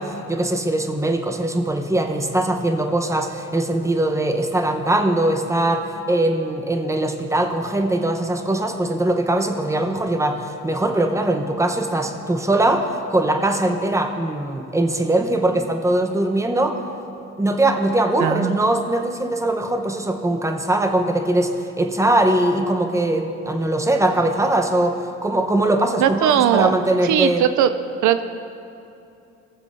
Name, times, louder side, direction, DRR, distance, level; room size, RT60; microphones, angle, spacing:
voice 1, 0.0-16.8 17.4-27.4, right 1 dB, 10° right, 4 dB, 0.8 m, -21 dB
voice 2, 18.2-18.6 26.0-26.8 27.0-27.7 28.0-28.2, right 10 dB, 75° right, 12 dB, 0.5 m, -18 dB
19.0 x 7.3 x 2.6 m, 2.7 s
cardioid pair, 90°, 30 cm